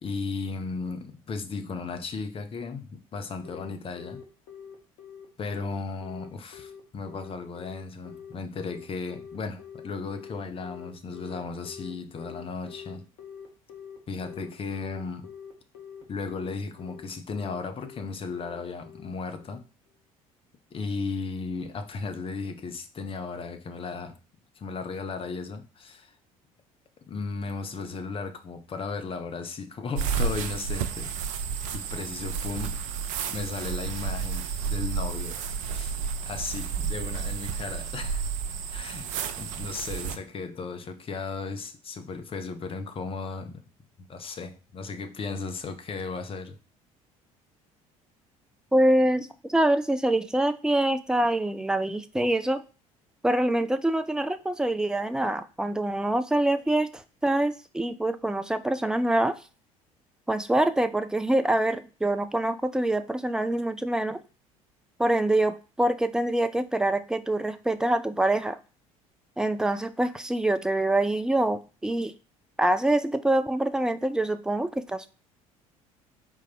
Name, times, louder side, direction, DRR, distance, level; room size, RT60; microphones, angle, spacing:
voice 1, 0.0-4.2 5.4-13.1 14.1-15.3 16.1-19.6 20.7-24.2 24.6-26.1 27.1-31.1 31.7-32.8 33.3-35.4 35.7-35.9 36.3-38.3 38.7-39.1 39.4-43.6 44.1-46.6, left 4 dB, 30° left, 0.8 m, -35 dB
Telephone, 3.4-19.6, left 8 dB, 60° left, 1.2 m, -45 dB
sound 1, 29.9-40.2, right 6 dB, 60° right, 0.5 m, -31 dB
voice 2, 48.7-52.6 53.2-59.4 60.3-64.2 65.0-68.6 69.4-72.1 72.6-75.1, right 1 dB, 5° right, 0.4 m, -25 dB
4.5 x 3.7 x 2.8 m
figure-of-eight pair, 60°, 19 cm